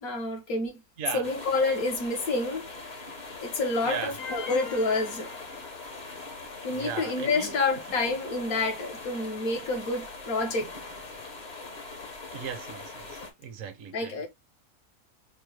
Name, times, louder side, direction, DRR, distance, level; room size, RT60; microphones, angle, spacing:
voice 1, 0.0-0.8 1.1-2.8 3.4-5.3 6.6-10.7 13.9-14.3, left 3 dB, 70° left, 1.5 m, -28 dB
sound 1, 1.2-13.3, left 3 dB, 35° left, 0.9 m, -42 dB
sound 2, 4.2-6.3, left 5 dB, 85° left, 1.6 m, -41 dB
voice 2, 6.7-7.6 12.3-13.1 13.4-14.3, right 8 dB, 65° right, 1.1 m, -37 dB
4.5 x 2.2 x 3.2 m
omnidirectional pair, 1.6 m